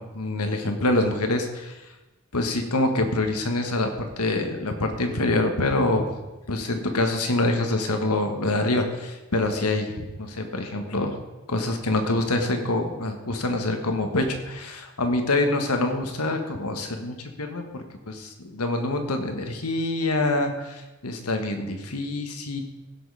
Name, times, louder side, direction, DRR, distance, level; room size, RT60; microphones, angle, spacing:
voice 1, 0.0-1.8 2.3-6.0 6.5-11.2 11.5-22.6, left 2 dB, 90° left, 5 dB, 1.5 m, -26 dB
16.0 x 6.4 x 4.9 m, 1.1 s
head